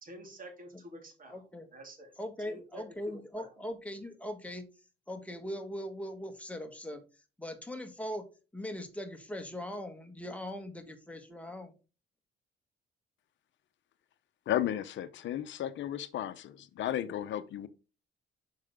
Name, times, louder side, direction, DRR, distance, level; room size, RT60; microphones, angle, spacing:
voice 1, 0.0-1.4 1.7-2.1 2.4-3.5, right 1 dB, 45° right, 3.3 m, -49 dB
voice 2, 1.3-1.7 2.2-4.7 5.1-7.0 7.4-8.3 8.5-11.7, left 1 dB, 5° left, 1.7 m, -40 dB
voice 3, 14.5-17.7, left 11 dB, 70° left, 0.7 m, -34 dB
6.4 x 5.6 x 3.6 m
cardioid pair, 90°, 20 cm